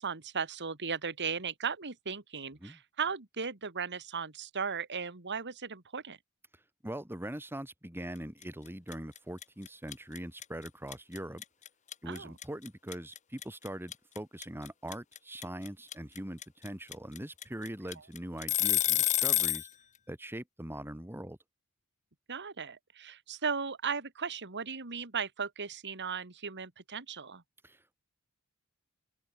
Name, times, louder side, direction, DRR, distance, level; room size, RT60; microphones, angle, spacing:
voice 1, 0.0-6.2 12.1-12.3 22.3-27.4, right 6 dB, 55° right, 2.3 m, -36 dB
voice 2, 6.8-11.4 12.0-19.7 20.1-21.4 27.6-28.0, right 1 dB, 10° right, 2.4 m, -42 dB
sound 1, 8.4-8.7 8.9-19.7, left 12 dB, 35° left, 0.8 m, -29 dB
open air
head